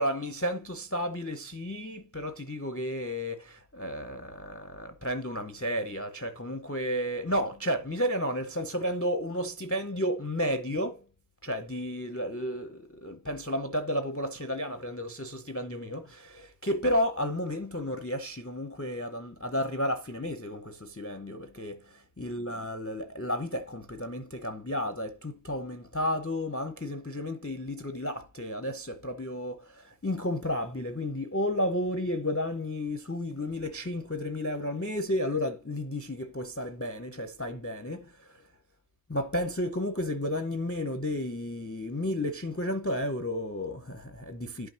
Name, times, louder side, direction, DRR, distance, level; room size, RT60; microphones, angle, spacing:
voice 1, 0.0-11.0 11.4-38.4 39.1-44.7, left 1 dB, 15° left, 0.6 m, -32 dB
11.5 x 5.8 x 2.8 m
omnidirectional pair, 1.1 m